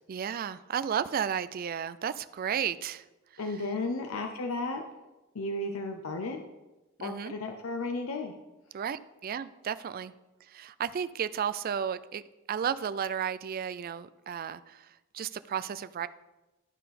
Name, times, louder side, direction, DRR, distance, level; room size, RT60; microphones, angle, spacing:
voice 1, 0.1-3.0 7.0-7.3 8.7-10.1 10.5-12.2 12.5-14.9 15.1-16.1, right 8 dB, 45° right, 14 dB, 0.3 m, -33 dB
voice 2, 3.4-4.8 5.3-6.4 7.0-8.3, left 2 dB, 85° left, 4 dB, 0.7 m, -34 dB
12.0 x 5.6 x 4.2 m, 1.0 s
head